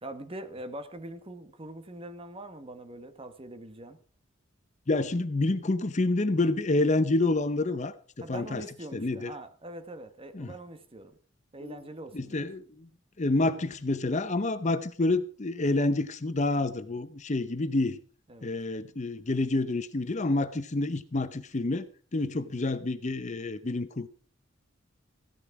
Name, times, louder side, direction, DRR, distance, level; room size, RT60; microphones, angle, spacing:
voice 1, 0.0-4.0 8.2-11.2 11.5-12.5 18.3-18.5, right 1 dB, 30° right, 1.2 m, -43 dB
voice 2, 4.9-7.9 8.3-8.6 8.9-9.3 10.3-10.5 11.6-11.8 12.1-12.9 13.2-18.0 18.4-24.1, left 2 dB, 35° left, 0.7 m, -28 dB
15.0 x 10.5 x 4.7 m
head